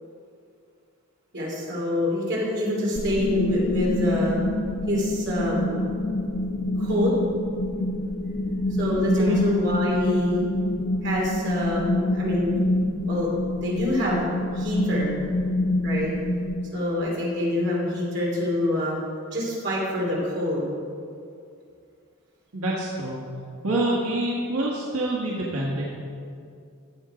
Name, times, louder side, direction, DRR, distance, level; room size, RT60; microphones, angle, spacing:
voice 1, 1.3-4.4 4.9-5.8 6.8-7.1 8.8-10.4 11.0-12.5 13.0-13.3 13.6-15.2 15.8-16.1 16.7-19.0 19.3-20.7, left 1 dB, 55° right, -4 dB, 3.1 m, -26 dB
sound 1, 2.9-16.6, left 1 dB, 60° left, 1.0 m, -26 dB
voice 2, 22.5-23.2 23.6-25.8, right 1 dB, 85° right, -4 dB, 1.6 m, -26 dB
14.0 x 7.1 x 5.0 m, 2.4 s
head